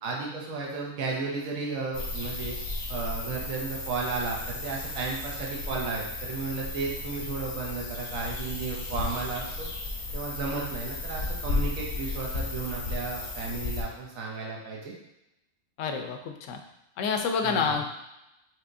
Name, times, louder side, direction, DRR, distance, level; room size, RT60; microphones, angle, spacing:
voice 1, 0.0-2.6 2.9-9.7 10.1-14.9 17.4-17.8, right 4 dB, 80° right, -2 dB, 1.2 m, -34 dB
sound 1, 1.9-13.8, left 2 dB, 90° left, 1.5 m, -34 dB
voice 2, 15.8-16.6 17.0-17.9, left 5 dB, 70° left, 5 dB, 0.9 m, -28 dB
6.1 x 2.9 x 2.6 m, 0.89 s
omnidirectional pair, 1.4 m